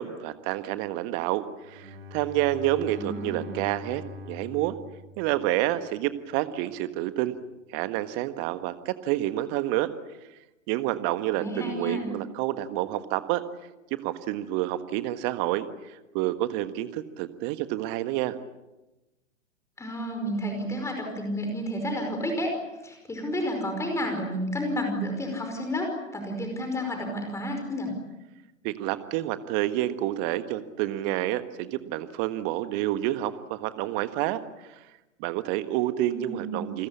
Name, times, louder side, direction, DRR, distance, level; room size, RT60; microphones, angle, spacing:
voice 1, 0.0-4.0 4.3-4.8 5.2-7.4 7.7-9.9 10.7-13.4 13.9-18.4 28.6-34.4 34.7-34.8 35.2-36.9, right 14 dB, 25° right, 12 dB, 1.6 m, -29 dB
Bowed string instrument, 1.7-6.0, left 2 dB, 50° right, 4.3 m, -43 dB
voice 2, 2.9-3.5 11.4-12.1 19.8-22.6 22.8-27.9 36.1-36.6, equal, 5° left, 4 dB, 5.2 m, -31 dB
29.0 x 21.0 x 8.6 m, 1.0 s
figure-of-eight pair, 115°, 39 cm